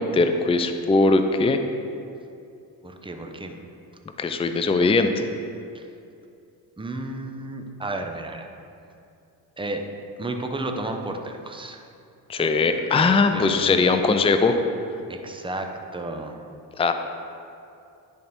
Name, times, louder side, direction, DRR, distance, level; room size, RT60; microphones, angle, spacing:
voice 1, 0.0-1.6 4.2-5.2 12.3-14.6 16.8-16.9, left 3 dB, 15° left, 7 dB, 0.4 m, -20 dB
voice 2, 2.8-3.6 5.7-5.9 6.8-8.5 9.6-9.8 10.2-11.8 12.4-12.5 12.8-13.7 15.1-16.4, right 2 dB, 10° right, 4 dB, 0.8 m, -33 dB
10.5 x 3.5 x 4.2 m, 2.6 s
hypercardioid pair, 50°, 44 cm